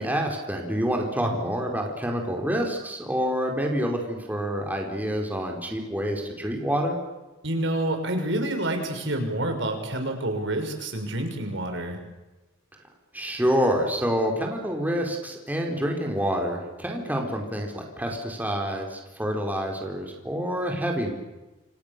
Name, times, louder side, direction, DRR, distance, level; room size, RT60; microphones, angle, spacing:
voice 1, 0.0-7.0 13.1-21.1, equal, 10° right, 1 dB, 4.7 m, -27 dB
voice 2, 7.4-12.0, right 1 dB, 65° right, 5 dB, 6.1 m, -28 dB
28.5 x 28.5 x 7.0 m, 1.1 s
head